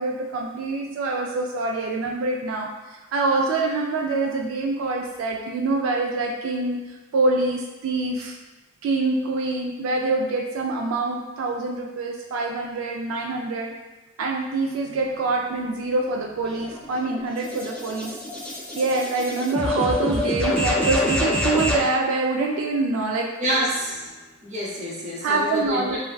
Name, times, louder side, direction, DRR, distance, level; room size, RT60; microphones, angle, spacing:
voice 1, 0.0-8.4 8.8-13.7 14.2-18.2 18.8-23.3 25.2-26.0, right 3 dB, 80° right, 0 dB, 0.3 m, -25 dB
sound 1, 16.5-21.9, left 1 dB, 5° left, 0.4 m, -26 dB
voice 2, 23.4-26.0, equal, 35° right, -5 dB, 0.7 m, -28 dB
3.3 x 2.4 x 2.2 m, 1.1 s
head